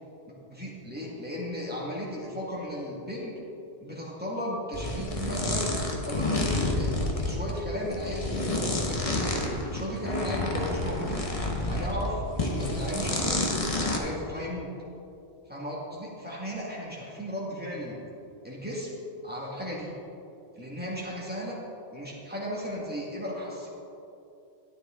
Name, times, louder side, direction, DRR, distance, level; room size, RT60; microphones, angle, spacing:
voice 1, 0.5-3.4 3.8-5.7 6.0-6.9 7.2-9.3 9.7-11.3 11.7-13.4 13.8-14.7 15.5-18.0 18.4-18.9 19.2-19.9 20.5-21.6 21.9-23.7, equal, 10° right, -5 dB, 2.2 m, -35 dB
sound 1, 4.7-12.1 12.4-14.0, left 2 dB, 35° left, 1.2 m, -29 dB
12.5 x 9.7 x 3.8 m, 2.8 s
omnidirectional pair, 1.1 m